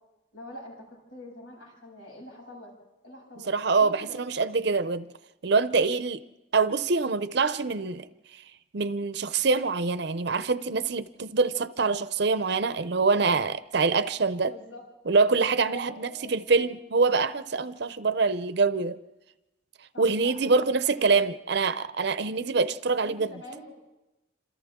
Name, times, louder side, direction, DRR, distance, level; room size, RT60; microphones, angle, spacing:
voice 1, 0.3-2.7 3.0-3.5 3.8-4.2 14.5-14.8 15.6-16.7 19.9-20.6 21.1-21.4 23.0-23.8, left 1 dB, 80° left, 7.5 m, -45 dB
voice 2, 3.5-5.1 5.4-6.2 6.5-8.1 8.3-8.4 8.7-14.5 15.1-19.0 20.0-23.3, right 4 dB, 55° right, 0.6 m, -25 dB
27.5 x 27.5 x 3.7 m
head